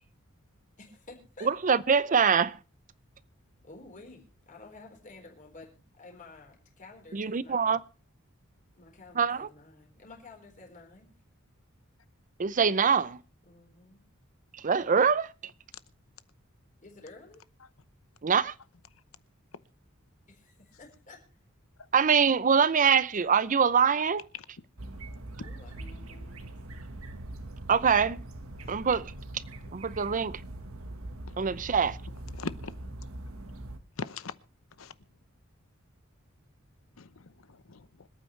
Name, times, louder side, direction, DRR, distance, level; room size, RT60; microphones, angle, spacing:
voice 1, 0.8-1.5 3.6-7.8 8.8-11.1 13.5-14.0 16.8-17.5 20.3-21.4 25.4-26.6, left 3 dB, 40° left, 4.3 m, -51 dB
voice 2, 1.4-2.6 7.1-7.8 9.2-9.5 12.4-13.2 14.5-15.3 18.2-18.5 21.9-24.3 27.7-28.2 28.7-29.4 29.7-30.4 31.4-32.0, right 6 dB, 40° right, 0.6 m, -24 dB
sound 1, 24.8-33.8, right 1 dB, 85° right, 1.5 m, -42 dB
voice 3, 32.4-32.7 34.0-34.3 34.8-34.9 37.0-38.1, left 4 dB, 70° left, 0.9 m, -40 dB
26.0 x 9.0 x 3.2 m
head